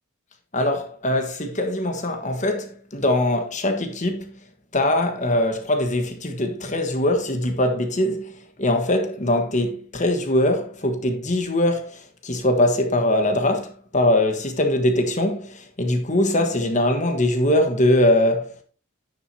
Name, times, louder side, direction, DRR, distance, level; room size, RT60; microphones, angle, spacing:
voice 1, 0.5-4.4 4.7-18.5, left 1 dB, 35° left, 1.3 m, -22 dB
9.5 x 7.3 x 2.8 m
head